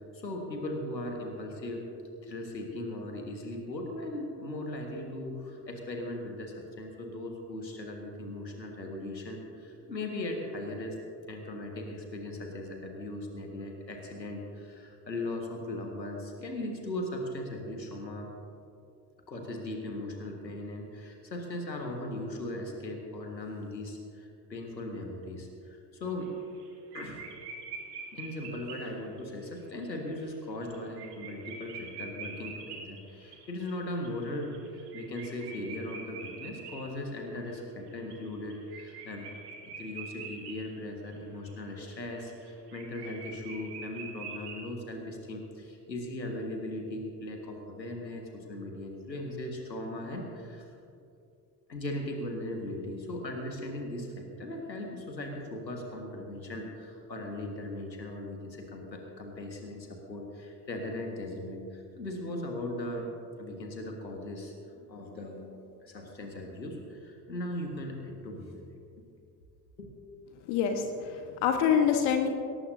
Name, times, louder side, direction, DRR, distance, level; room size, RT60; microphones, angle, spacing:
voice 1, 0.1-1.9 2.2-11.0 11.3-18.3 19.3-26.3 26.9-27.3 28.1-39.3 39.8-50.6 51.7-63.1 63.4-64.5 64.9-68.8 69.8-69.9, left 1 dB, 85° left, 2 dB, 1.8 m, -38 dB
sound 1, 26.2-26.7 26.9-29.2 29.8-29.9 30.2-30.3 30.6-37.5 37.9-40.8 41.1-41.2 41.4-44.7, right 4 dB, 70° right, 2.3 m, -44 dB
voice 2, 70.5-72.3, left 7 dB, 55° left, 4 dB, 1.4 m, -26 dB
20.5 x 18.5 x 2.8 m, 2.5 s
figure-of-eight pair, 55°, 50 cm